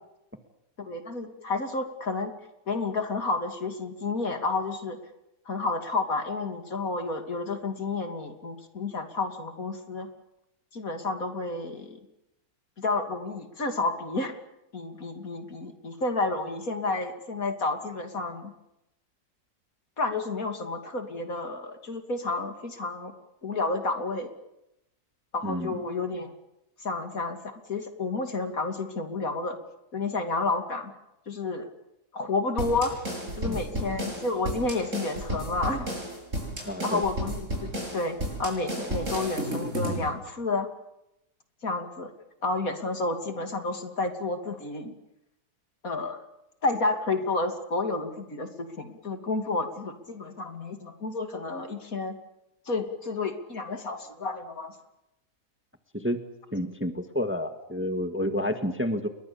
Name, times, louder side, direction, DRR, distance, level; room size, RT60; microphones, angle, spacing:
voice 1, 0.8-2.3 2.7-5.0 5.5-10.1 10.7-12.0 12.8-14.3 14.7-18.5 20.0-23.1 23.4-24.3 25.3-26.3 26.8-29.6 29.9-30.9 31.3-31.7 32.1-32.9 33.4-35.9 36.8-40.7 41.6-42.1 42.4-44.9 45.8-46.2 46.6-52.2 52.7-54.7, left 3 dB, 60° left, 6 dB, 3.2 m, -30 dB
voice 2, 25.4-25.7 33.4-33.6 36.6-37.0 55.9-56.2 56.5-59.1, equal, 10° right, 7 dB, 1.7 m, -29 dB
sound 1, 32.6-40.1, equal, 50° right, 7.5 m, -33 dB
29.0 x 22.5 x 7.1 m, 0.86 s
omnidirectional pair, 1.7 m